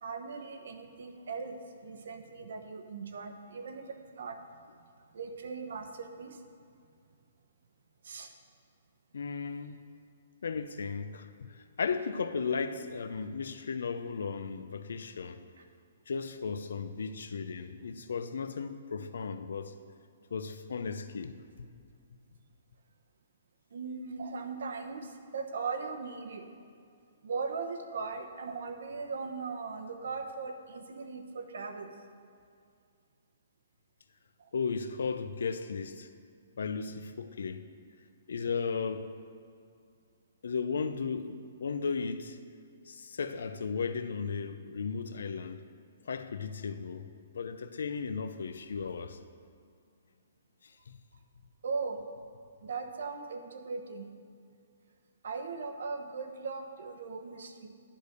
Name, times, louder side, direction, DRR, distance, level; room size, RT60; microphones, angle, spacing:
voice 1, 0.0-4.4 5.0-6.4 8.0-8.3 15.6-15.7 23.7-26.5 27.2-31.9 34.4-34.5 51.6-52.0 52.6-54.1 55.2-57.7, right 4 dB, 70° right, 0.9 m, -39 dB
voice 2, 9.1-9.8 10.4-15.4 16.1-19.8 20.3-21.7 34.5-36.1 36.6-37.6 38.3-39.1 40.4-42.4 42.9-45.6 46.0-47.1 47.3-49.2 50.6-51.0, left 5 dB, 80° left, 0.6 m, -35 dB
10.5 x 5.1 x 6.6 m
hypercardioid pair, 170°, 0 cm